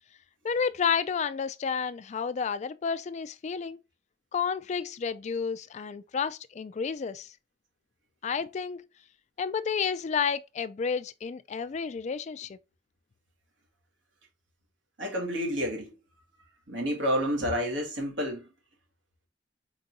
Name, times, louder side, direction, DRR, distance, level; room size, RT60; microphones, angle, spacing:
voice 1, 0.4-3.8 4.3-7.3 8.2-8.9 9.4-12.6, left 6 dB, 40° left, 0.3 m, -31 dB
voice 2, 15.0-15.9 16.7-18.5, equal, 75° right, 1.9 m, -29 dB
4.5 x 4.0 x 2.6 m
head